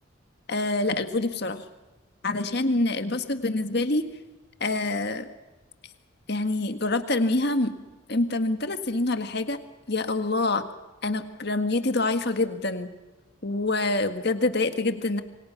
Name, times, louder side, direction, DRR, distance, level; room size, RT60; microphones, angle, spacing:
voice 1, 0.5-1.6 2.2-4.1 4.6-5.3 6.3-7.7 8.1-9.6 9.9-10.6 11.0-12.9 13.4-15.2, left 2 dB, 55° left, 8 dB, 1.8 m, -26 dB
27.5 x 24.5 x 5.9 m, 1.1 s
head